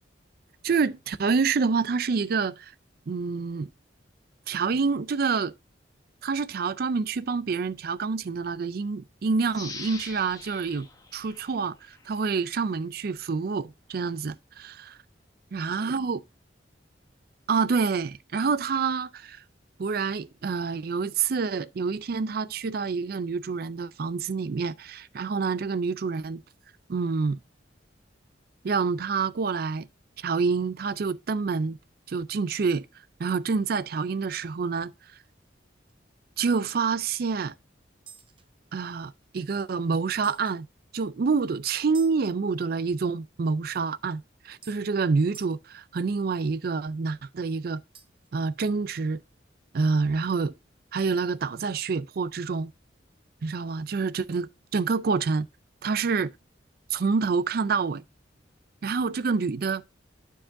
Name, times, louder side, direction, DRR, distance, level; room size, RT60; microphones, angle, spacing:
voice 1, 0.6-2.7 3.1-3.7 4.5-5.5 6.2-15.0 15.5-16.2 17.5-19.4 19.8-26.4 26.9-27.4 28.6-29.9 30.2-31.8 32.1-32.9 33.2-34.9 36.4-37.5 38.7-40.7 40.9-47.8 48.3-49.2 49.7-50.5 50.9-52.7 53.4-55.5 55.8-56.3 56.9-58.0 58.8-59.8, right 5 dB, 55° right, 0.4 m, -27 dB
sound 1, 9.5-12.2 12.7-12.8, left 4 dB, 20° left, 0.9 m, -43 dB
sound 2, 34.3-34.4 34.8-35.0 35.2-35.4 35.9-36.0 38.1-39.3 40.2-40.6 41.9-42.2 43.9-44.0 44.6-44.8 45.3-45.6 47.9-48.3, right 7 dB, 25° right, 0.7 m, -50 dB
11.0 x 4.7 x 2.6 m
head